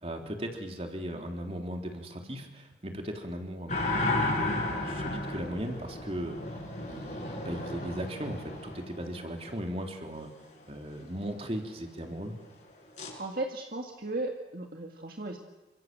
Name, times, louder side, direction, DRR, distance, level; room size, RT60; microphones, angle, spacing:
voice 1, 0.0-6.4 6.8-10.3 10.7-12.3, equal, 35° right, 3 dB, 3.7 m, -37 dB
sound 1, 3.7-9.5 13.0-13.1, left 2 dB, 45° left, 7.8 m, -33 dB
voice 2, 13.2-15.4, right 2 dB, 55° right, 3 dB, 2.0 m, -35 dB
29.5 x 25.5 x 7.7 m, 1.1 s
head